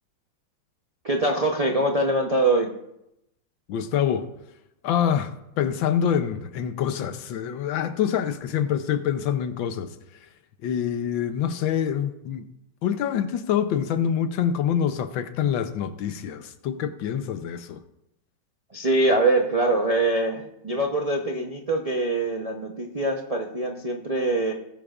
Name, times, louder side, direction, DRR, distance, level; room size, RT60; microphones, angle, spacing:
voice 1, 1.0-2.7 18.7-24.5, right 2 dB, 55° right, 0.4 m, -23 dB
voice 2, 3.7-4.3 4.8-9.9 10.6-12.5 12.8-17.8, left 8 dB, 75° left, 1.5 m, -26 dB
18.5 x 10.5 x 2.5 m
omnidirectional pair, 2.2 m